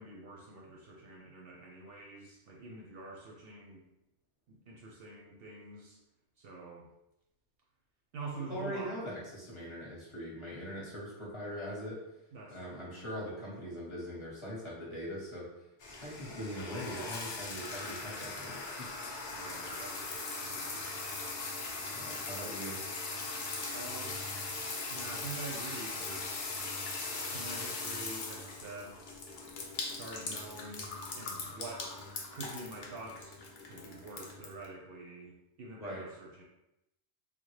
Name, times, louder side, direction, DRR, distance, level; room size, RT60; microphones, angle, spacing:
voice 1, 0.0-3.8 4.5-6.0 6.4-6.9 8.1-8.9 12.3-13.1 19.3-21.0 23.7-24.2 24.9-26.3 27.3-29.0 29.9-31.9 32.3-33.4 33.6-36.4, right 2 dB, 65° right, -2 dB, 0.7 m, -46 dB
voice 2, 8.5-12.0 12.5-18.6 21.7-22.8 35.8-36.1, equal, 30° left, -7 dB, 0.9 m, -41 dB
sound 1, 15.8-34.7, left 3 dB, 55° left, 0.6 m, -40 dB
3.6 x 2.0 x 3.1 m, 0.91 s
omnidirectional pair, 1.2 m